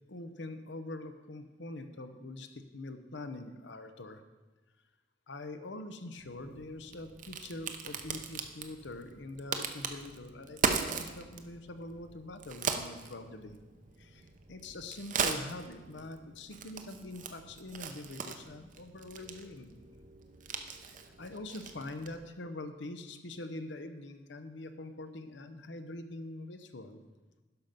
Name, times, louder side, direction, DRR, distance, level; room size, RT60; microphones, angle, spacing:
voice 1, 0.1-4.2 5.3-13.6 14.0-19.8 20.8-27.0, left 2 dB, 70° left, 9 dB, 0.8 m, -44 dB
Crack, 6.2-22.3, right 5 dB, 45° right, 0.7 m, -39 dB
11.5 x 5.8 x 5.2 m, 1.2 s
head